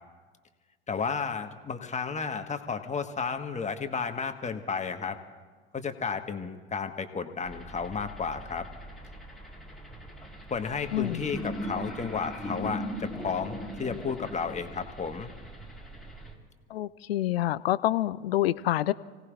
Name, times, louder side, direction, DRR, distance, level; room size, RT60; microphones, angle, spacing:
voice 1, 0.9-5.2 5.7-8.6 10.5-15.3, left 5 dB, 25° left, 6 dB, 1.5 m, -33 dB
sound 1, 7.5-16.3, equal, ahead, 4.1 m, -40 dB
voice 2, 10.9-11.2 16.7-18.9, left 14 dB, 75° left, 18 dB, 0.6 m, -27 dB
29.5 x 17.5 x 2.5 m, 1.4 s
figure-of-eight pair, 70°, 31 cm